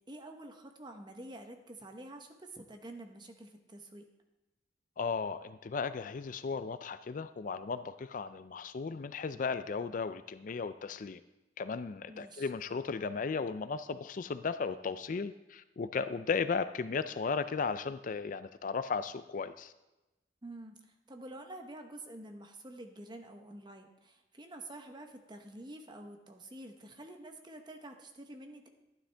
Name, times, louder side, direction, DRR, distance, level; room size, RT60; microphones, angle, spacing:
voice 1, 0.1-4.1 12.1-12.5 20.4-28.7, right 1 dB, 25° right, 5 dB, 1.0 m, -48 dB
voice 2, 5.0-11.2 11.6-19.7, left 5 dB, 45° left, 12 dB, 0.4 m, -35 dB
12.5 x 11.5 x 3.4 m, 1.0 s
head